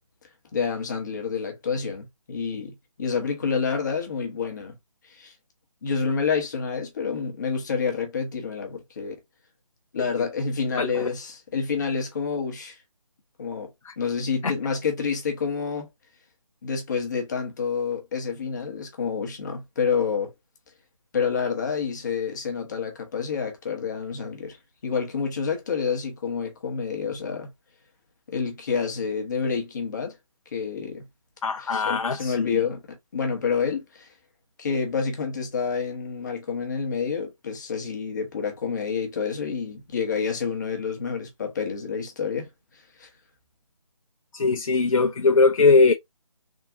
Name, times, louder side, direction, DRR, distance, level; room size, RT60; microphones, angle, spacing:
voice 1, 0.5-2.7 3.0-4.7 5.1-5.3 5.8-9.2 9.9-12.8 13.4-13.7 14.0-15.9 16.6-20.3 21.1-24.6 24.8-27.5 28.3-30.2 30.5-31.0 31.6-34.1 34.6-42.5 43.0-43.1, left 6 dB, 30° left, 1.0 m, -28 dB
voice 2, 10.8-11.1 13.9-14.0 14.4-14.5 31.4-32.6 44.3-45.9, left 4 dB, 65° left, 0.5 m, -20 dB
3.6 x 2.6 x 2.6 m
figure-of-eight pair, 155°, 18 cm